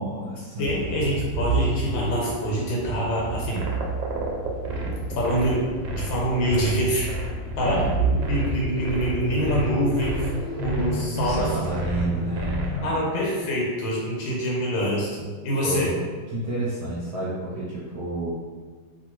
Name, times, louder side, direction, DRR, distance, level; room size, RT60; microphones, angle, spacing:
voice 1, 0.0-0.7 7.6-8.0 11.2-13.1 15.6-15.9 16.3-18.4, right 1 dB, 70° right, -8 dB, 1.1 m, -30 dB
voice 2, 0.6-3.7 4.8-5.6 5.9-7.1 7.5-10.2 10.6-11.5 12.8-15.9, equal, 85° left, -4 dB, 1.6 m, -25 dB
sound 1, 0.6-12.8, right 3 dB, 50° right, 1.1 m, -30 dB
sound 2, 3.5-12.8, equal, 85° right, 1.3 m, -32 dB
3.0 x 2.6 x 3.0 m, 1.5 s
omnidirectional pair, 2.0 m